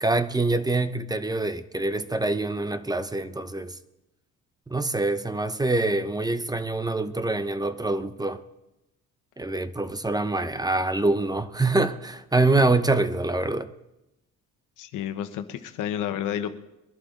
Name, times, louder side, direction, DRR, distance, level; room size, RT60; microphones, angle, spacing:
voice 1, 0.0-3.8 4.7-8.4 9.4-13.7, right 2 dB, 15° right, 0.8 m, -25 dB
voice 2, 14.8-16.6, left 10 dB, 90° left, 1.1 m, -30 dB
23.0 x 11.0 x 3.8 m
cardioid pair, 90°, 30 cm